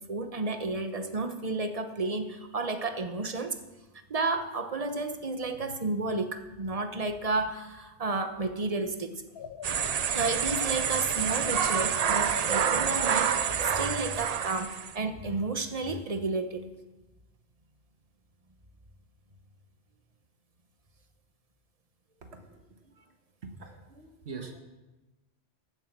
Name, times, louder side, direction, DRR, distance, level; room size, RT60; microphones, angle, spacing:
voice 1, 0.1-3.6 4.1-9.1 10.1-16.6, right 3 dB, 35° right, 8 dB, 1.0 m, -32 dB
sound 1, 9.3-14.2, left 8 dB, 65° left, 0.8 m, -42 dB
sound 2, 9.6-14.9, right 8 dB, 50° right, 0.5 m, -28 dB
voice 2, 23.4-24.6, right 4 dB, 75° right, 5 dB, 1.6 m, -42 dB
15.0 x 8.1 x 6.0 m, 1.1 s
omnidirectional pair, 1.1 m